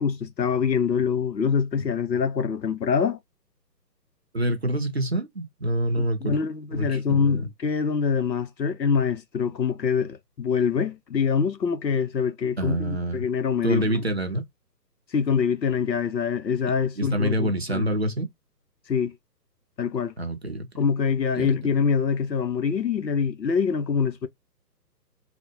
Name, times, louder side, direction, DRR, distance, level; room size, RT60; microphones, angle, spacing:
voice 1, 0.0-3.2 6.0-14.1 15.1-17.9 18.9-19.1 19.8-20.1 20.8-24.3, left 6 dB, 85° left, 0.7 m, -25 dB
voice 2, 4.3-6.4 6.7-7.4 12.6-13.2 13.6-14.4 17.0-18.3 20.2-20.7 21.4-21.5, right 1 dB, 40° right, 0.5 m, -26 dB
3.3 x 2.1 x 2.8 m
figure-of-eight pair, 140°, 50 cm